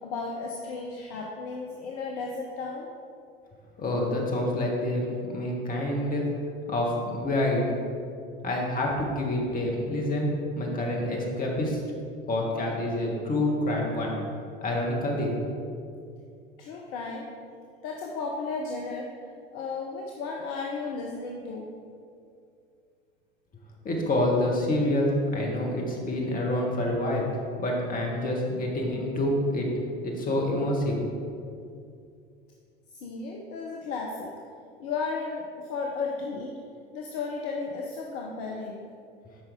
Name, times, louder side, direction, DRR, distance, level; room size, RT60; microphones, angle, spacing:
voice 1, 0.0-2.9 16.6-17.3 17.8-19.1 19.5-21.7 32.9-34.3 34.8-36.6 36.9-38.9, left 4 dB, 45° left, 0 dB, 0.8 m, -34 dB
voice 2, 3.8-6.2 6.7-7.6 8.4-11.8 12.3-14.1 14.6-15.3 23.8-27.3 27.6-29.7 30.0-31.0, left 1 dB, 25° left, -1 dB, 1.5 m, -27 dB
8.7 x 5.4 x 3.6 m, 2.4 s
figure-of-eight pair, 70°, 31 cm